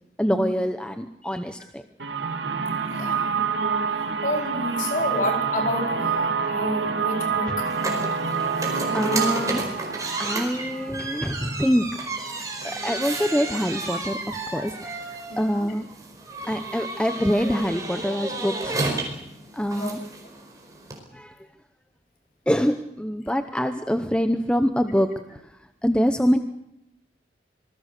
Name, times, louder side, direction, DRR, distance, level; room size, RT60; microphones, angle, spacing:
voice 1, 0.2-1.8 7.5-7.6 8.4-8.5 8.9-9.6 10.2-11.9 12.6-15.9 16.4-18.8 19.5-20.0 21.1-21.4 22.5-25.5 25.8-26.4, equal, 5° left, 8 dB, 0.8 m, -25 dB
sound 1, 2.0-11.7, right 5 dB, 75° right, 2.3 m, -27 dB
voice 2, 2.9-3.3 4.2-8.4 8.9-9.4 15.3-15.8 16.4-16.5 19.7-19.9, equal, 45° left, 2 dB, 4.8 m, -30 dB
sound 2, 7.6-21.0, right 2 dB, 20° right, 4.7 m, -32 dB
26.0 x 20.0 x 6.7 m, 0.82 s
head